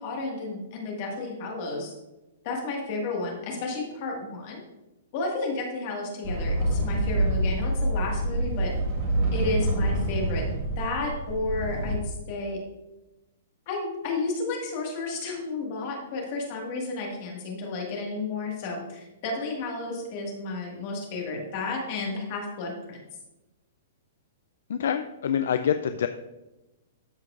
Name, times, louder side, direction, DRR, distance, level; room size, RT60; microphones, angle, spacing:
voice 1, 0.0-1.9 2.4-4.6 5.1-8.7 9.3-10.4 10.8-12.6 13.7-23.0, left 3 dB, 30° left, 0 dB, 1.6 m, -32 dB
sound 1, 6.2-11.9, right 1 dB, 35° right, 1.6 m, -26 dB
voice 2, 24.7-26.1, left 8 dB, 65° left, 9 dB, 0.3 m, -26 dB
13.0 x 4.6 x 2.5 m, 1.0 s
hypercardioid pair, 175°, 0 cm